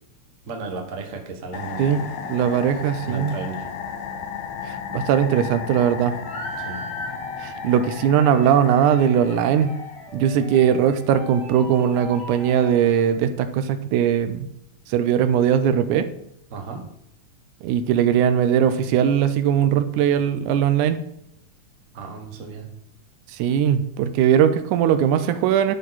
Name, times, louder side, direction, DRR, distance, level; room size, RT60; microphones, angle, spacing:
voice 1, 0.4-2.1 3.0-3.7 6.6-6.8 16.5-16.9 21.9-22.7, right 4 dB, 60° right, 3 dB, 0.8 m, -34 dB
sound 1, 1.5-10.4, left 7 dB, 85° left, 2.2 m, -35 dB
voice 2, 1.8-3.4 4.7-6.1 7.4-9.8 10.1-14.5 14.9-16.1 17.6-21.0 23.3-25.8, right 9 dB, 80° right, 10 dB, 2.1 m, -20 dB
sound 2, 6.2-13.2, equal, 5° left, 1.5 m, -39 dB
12.0 x 4.4 x 4.0 m, 0.75 s
omnidirectional pair, 3.5 m